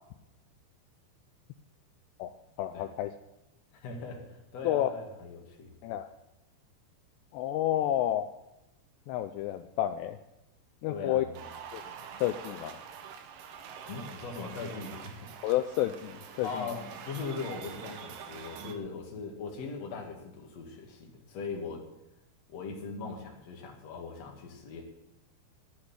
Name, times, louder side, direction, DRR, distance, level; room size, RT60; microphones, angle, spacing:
voice 1, 2.6-3.2 4.6-4.9 5.8-6.1 7.3-8.3 9.1-10.2 10.8-11.2 11.7-11.8 12.2-12.8 15.4-16.7, left 13 dB, 85° left, 9 dB, 2.4 m, -30 dB
voice 2, 3.7-5.7 10.9-11.5 13.9-15.3 16.4-21.9 22.5-24.8, left 4 dB, 45° left, 0 dB, 2.4 m, -40 dB
sound 1, 11.3-18.8, right 7 dB, 80° right, 3.4 m, -45 dB
10.0 x 8.6 x 9.6 m, 0.92 s
omnidirectional pair, 5.5 m